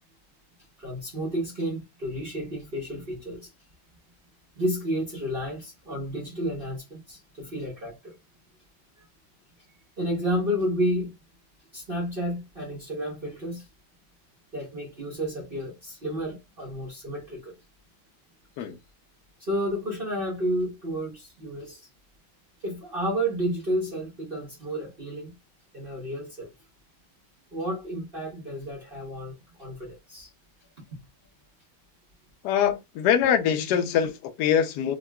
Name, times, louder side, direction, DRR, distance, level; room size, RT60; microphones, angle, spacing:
voice 1, 0.8-3.5 4.6-8.2 10.0-11.2 11.7-13.7 14.5-17.5 19.4-21.9 22.6-25.3 25.7-26.5 27.5-30.3, equal, 50° right, 0.6 m, -31 dB
voice 2, 32.4-35.0, left 8 dB, 70° left, 1.0 m, -23 dB
3.6 x 2.2 x 2.2 m
omnidirectional pair, 2.2 m